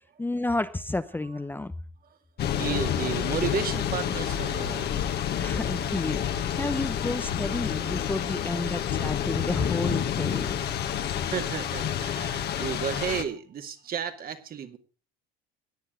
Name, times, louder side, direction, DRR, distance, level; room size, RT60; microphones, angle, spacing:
voice 1, 0.2-1.7 5.4-10.5, left 2 dB, 10° left, 0.8 m, -31 dB
Thunder / Rain, 2.4-13.2, left 9 dB, 55° left, 1.7 m, -29 dB
voice 2, 2.5-5.6 7.7-8.0 8.9-9.0 10.3-10.4 10.9-14.8, right 7 dB, 45° right, 2.2 m, -34 dB
17.5 x 10.0 x 3.8 m
supercardioid pair, 85°, 20 cm